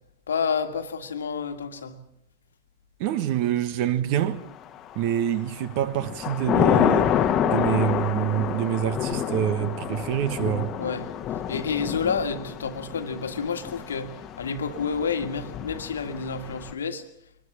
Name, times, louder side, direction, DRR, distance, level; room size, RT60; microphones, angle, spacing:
voice 1, 0.3-2.0 10.8-11.1 11.5-17.1, left 5 dB, 70° left, 1.7 m, -29 dB
voice 2, 3.0-4.4 4.9-10.7, right 11 dB, 45° right, 1.3 m, -26 dB
Thunder / Rain, 4.6-5.2 5.6-16.7, left 9 dB, 30° left, 1.3 m, -28 dB
23.0 x 21.0 x 7.2 m
figure-of-eight pair, 90°, 0 cm